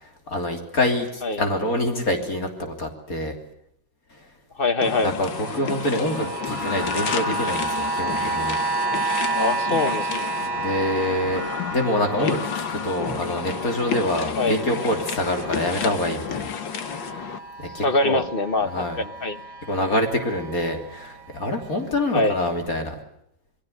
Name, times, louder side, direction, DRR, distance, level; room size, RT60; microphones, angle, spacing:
voice 1, 0.0-3.4 4.1-4.2 5.0-8.6 10.6-11.4 11.7-16.5 17.6-18.2 18.6-19.0 19.7-23.0, left 1 dB, 50° left, 4 dB, 3.6 m, -26 dB
voice 2, 4.5-5.1 9.3-10.3 12.2-12.3 14.3-14.6 17.8-19.4 22.1-22.3, left 2 dB, 35° left, 10 dB, 1.3 m, -24 dB
sound 1, 4.8-17.4, left 7 dB, 85° left, 2.2 m, -31 dB
sound 2, 5.3-16.4 16.7-21.3 22.0-22.1, right 3 dB, 75° right, 2.3 m, -31 dB
28.0 x 21.0 x 6.7 m, 0.74 s
omnidirectional pair, 2.0 m